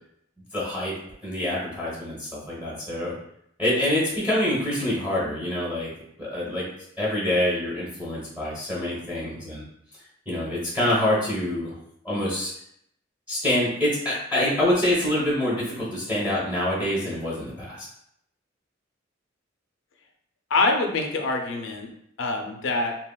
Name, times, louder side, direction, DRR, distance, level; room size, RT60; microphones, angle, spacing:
voice 1, 0.5-0.9 1.2-3.1 3.6-5.9 6.2-6.7 7.0-9.6 10.3-11.8 12.0-12.5 13.3-17.9, left 1 dB, 10° right, -7 dB, 0.9 m, -26 dB
voice 2, 20.5-21.9 22.2-23.0, left 3 dB, 85° left, 3 dB, 0.5 m, -25 dB
2.9 x 2.7 x 2.2 m, 0.73 s
head